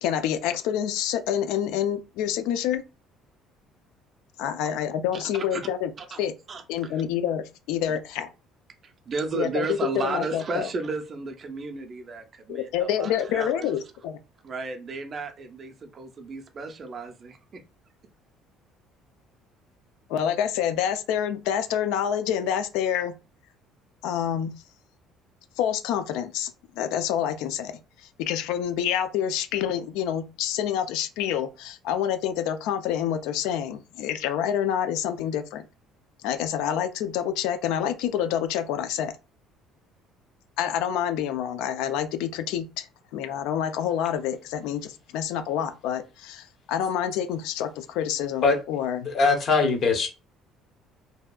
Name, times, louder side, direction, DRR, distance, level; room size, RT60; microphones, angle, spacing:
voice 1, 0.0-2.8 4.4-5.9 6.2-6.3 6.7-8.3 9.3-10.7 12.5-14.2 20.1-23.2 24.0-24.6 25.6-26.5 26.8-27.8 28.2-35.6 36.2-39.1 40.6-42.9 43.1-49.0, left 9 dB, 85° left, 0.3 m, -27 dB
voice 2, 6.5-7.0 9.1-13.7 14.4-17.6, right 4 dB, 35° right, 0.4 m, -33 dB
voice 3, 49.0-50.1, left 4 dB, 45° left, 0.7 m, -21 dB
2.7 x 2.3 x 2.2 m
cardioid pair, 135°, 0 cm